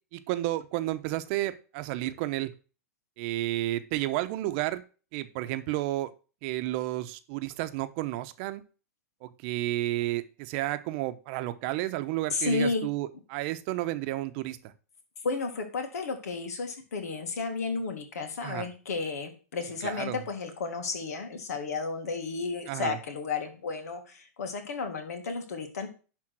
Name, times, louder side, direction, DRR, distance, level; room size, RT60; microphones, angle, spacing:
voice 1, 0.1-2.5 3.2-4.8 5.1-6.1 6.4-8.6 9.2-14.7 18.4-18.7 19.8-20.2 22.7-23.0, right 16 dB, 50° right, 11 dB, 0.8 m, -31 dB
voice 2, 12.3-12.9 15.2-25.9, left 4 dB, 80° left, 6 dB, 2.1 m, -32 dB
11.0 x 3.7 x 6.2 m, 0.36 s
hypercardioid pair, 120°, 8 cm